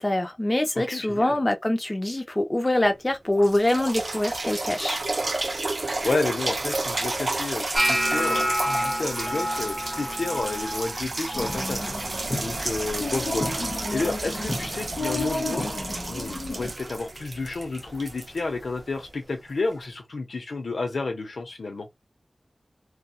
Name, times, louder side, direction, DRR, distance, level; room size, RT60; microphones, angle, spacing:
voice 1, 0.0-5.0, left 1 dB, 25° left, 0.5 m, -24 dB
voice 2, 0.7-1.4 6.0-11.8 12.4-13.6 13.9-15.7 16.1-21.9, left 3 dB, 85° left, 0.8 m, -31 dB
sound 1, 2.8-2.9 3.3-19.1 19.7-19.8, right 2 dB, 50° right, 0.4 m, -32 dB
sound 2, 7.7-13.8 14.1-14.6 15.0-15.5 16.2-16.4 18.1-18.2, equal, ahead, 1.2 m, -30 dB
sound 3, 11.3-16.7, left 2 dB, 40° left, 1.0 m, -32 dB
2.7 x 2.3 x 2.4 m
wide cardioid pair, 75°, 0 cm